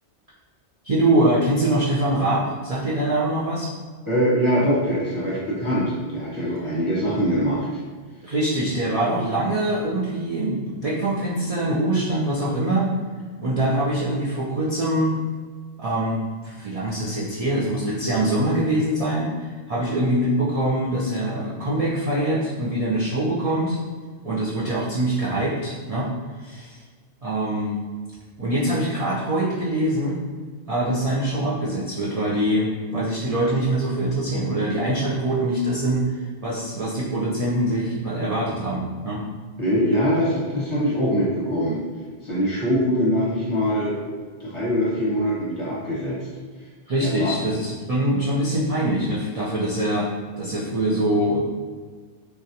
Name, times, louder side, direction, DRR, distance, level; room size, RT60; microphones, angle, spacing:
voice 1, 0.8-3.7 8.2-12.9 13.4-15.1 15.8-23.8 24.2-26.1 26.4-26.8 27.2-27.7 28.4-30.2 30.7-39.2 46.9-50.1 50.4-51.4, right 1 dB, 55° right, -7 dB, 0.4 m, -23 dB
voice 2, 4.1-7.7 39.6-41.8 42.2-44.0 44.4-46.2 47.0-47.3, equal, 30° left, -7 dB, 0.7 m, -23 dB
3.2 x 2.3 x 2.7 m, 1.5 s
omnidirectional pair, 1.2 m